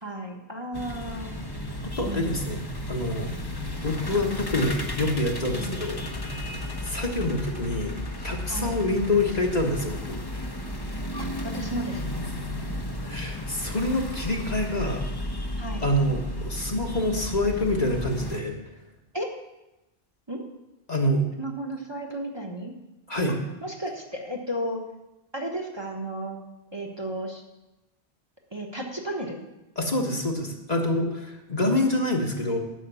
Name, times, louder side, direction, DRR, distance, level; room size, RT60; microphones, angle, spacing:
voice 1, 0.0-1.4 2.0-2.6 5.6-5.7 8.5-8.8 11.2-12.0 15.6-15.9 19.1-19.3 20.3-20.4 21.4-22.7 23.6-24.8 25.3-26.4 26.7-27.4 28.5-29.4, right 1 dB, 25° right, 1 dB, 1.3 m, -33 dB
sound 1, 0.7-18.4, left 1 dB, 25° left, 1.0 m, -33 dB
voice 2, 1.8-2.6 2.9-3.3 3.8-6.0 6.8-7.9 8.2-10.5 13.1-15.0 15.8-18.6 20.9-21.2 23.1-23.4 29.8-32.6, left 1 dB, 40° left, 1 dB, 1.5 m, -26 dB
11.0 x 6.7 x 8.2 m, 0.99 s
omnidirectional pair, 1.1 m